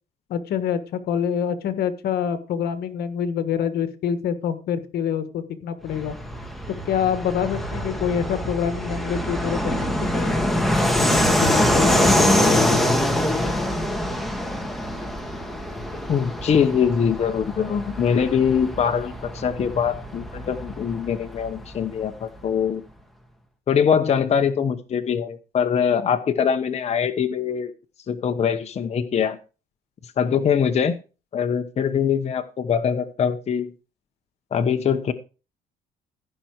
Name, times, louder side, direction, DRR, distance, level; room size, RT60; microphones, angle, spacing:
voice 1, 0.3-6.2 6.7-10.4 11.0-12.8, left 8 dB, 70° left, 11 dB, 1.5 m, -26 dB
Fixed-wing aircraft airplane, 5.9-22.1, equal, ahead, 1.9 m, -24 dB
voice 2, 16.1-22.8 23.7-27.7 28.1-29.4 30.2-30.9 31.3-33.7 34.5-35.1, left 7 dB, 40° left, 6 dB, 1.0 m, -23 dB
15.5 x 5.8 x 4.8 m, 0.33 s
cardioid pair, 110°, 17 cm